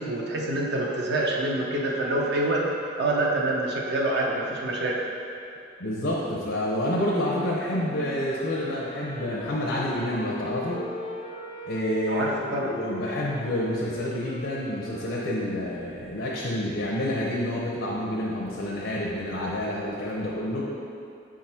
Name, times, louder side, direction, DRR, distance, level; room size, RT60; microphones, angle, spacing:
voice 1, 0.0-2.6 3.0-5.0 12.1-12.7, right 2 dB, 60° right, -2 dB, 0.7 m, -26 dB
voice 2, 5.8-10.8 11.7-12.2 12.6-20.7, left 1 dB, 75° left, -4 dB, 0.8 m, -28 dB
Wind instrument woodwind instrument, 7.7-16.1, left 2 dB, 35° left, 0.5 m, -39 dB
5.9 x 3.8 x 4.4 m, 2.7 s
head